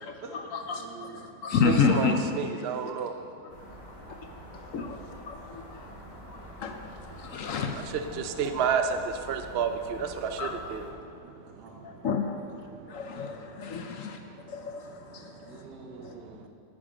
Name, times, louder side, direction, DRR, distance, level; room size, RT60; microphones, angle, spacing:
voice 1, 0.0-2.2 4.5-5.0 5.3-5.9 6.3-8.2 10.4-10.5 11.8-12.4 12.9-14.2 14.5-15.6, left 5 dB, 65° left, 5 dB, 0.9 m, -30 dB
voice 2, 0.8-1.2 3.0-3.1 11.2-11.8 13.1-13.3 15.4-16.5, right 4 dB, 85° right, -1 dB, 2.1 m, -47 dB
voice 3, 1.7-3.1 8.1-11.1 15.2-15.3, right 6 dB, 70° right, 7 dB, 0.6 m, -30 dB
sound 1, 3.5-10.9, equal, 30° left, 1.3 m, -46 dB
10.0 x 9.0 x 4.9 m, 2.4 s
omnidirectional pair, 1.8 m